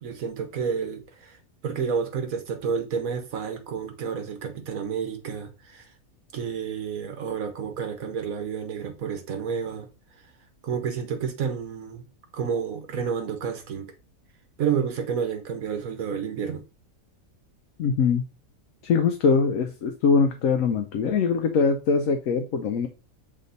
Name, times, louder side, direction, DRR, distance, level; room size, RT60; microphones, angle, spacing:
voice 1, 0.0-1.4 1.6-5.8 6.3-9.9 10.6-12.0 12.3-13.9 14.6-16.6, right 7 dB, 75° right, 1.5 m, -30 dB
voice 2, 17.8-18.2 18.8-22.9, left 5 dB, 70° left, 1.0 m, -22 dB
6.5 x 3.6 x 4.0 m
omnidirectional pair, 1.5 m